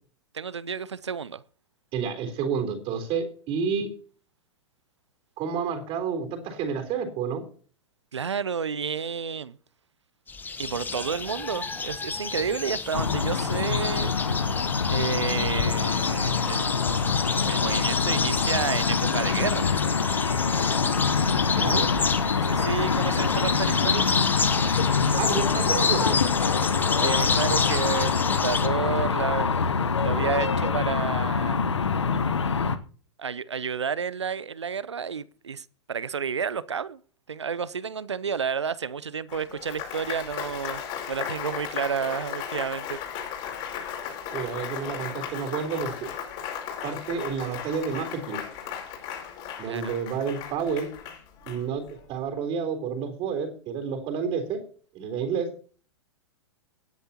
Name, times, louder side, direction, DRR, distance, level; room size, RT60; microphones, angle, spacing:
voice 1, 0.3-1.4 8.1-9.6 10.6-14.1 14.9-16.9 17.4-19.7 22.3-24.1 27.0-29.5 30.0-32.0 33.2-37.0 37.3-40.8 41.1-43.0 49.6-50.0, right 6 dB, 85° right, 0.6 m, -31 dB
voice 2, 1.9-3.9 5.4-7.4 21.5-21.9 25.2-26.2 44.3-46.1 46.8-48.4 49.6-50.9 51.5-54.6 54.9-55.5, right 6 dB, 40° right, 3.8 m, -30 dB
sound 1, 10.3-28.7, left 5 dB, 15° left, 1.1 m, -30 dB
sound 2, 12.9-32.8, left 5 dB, 85° left, 1.0 m, -25 dB
Applause, 39.3-52.0, left 8 dB, 45° left, 5.2 m, -36 dB
19.0 x 10.0 x 2.9 m
figure-of-eight pair, 100°, 14 cm